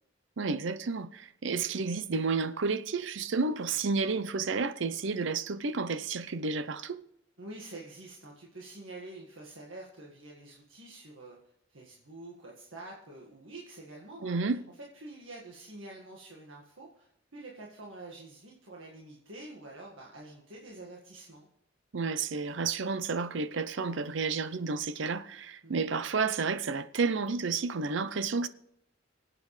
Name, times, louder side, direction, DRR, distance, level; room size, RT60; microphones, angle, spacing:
voice 1, 0.4-7.0 14.2-14.6 21.9-28.5, right 4 dB, 70° right, 0.6 m, -31 dB
voice 2, 7.4-11.4 11.7-14.5 14.9-21.5 25.6-25.8, right 2 dB, 85° right, 1.8 m, -47 dB
25.5 x 8.5 x 3.2 m
head